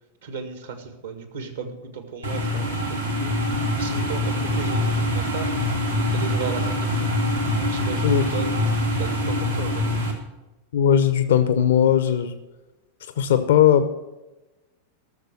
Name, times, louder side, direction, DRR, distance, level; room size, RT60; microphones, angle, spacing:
voice 1, 0.2-5.5 6.0-7.2 7.6-8.5 9.0-9.8, right 5 dB, 65° right, 7 dB, 1.8 m, -35 dB
sound 1, 2.2-10.1, left 1 dB, 85° right, 2.3 m, -24 dB
voice 2, 10.7-12.3 13.2-13.9, left 9 dB, 60° left, 11 dB, 0.7 m, -18 dB
13.5 x 6.8 x 7.7 m, 1.0 s
figure-of-eight pair, 90°, 0 cm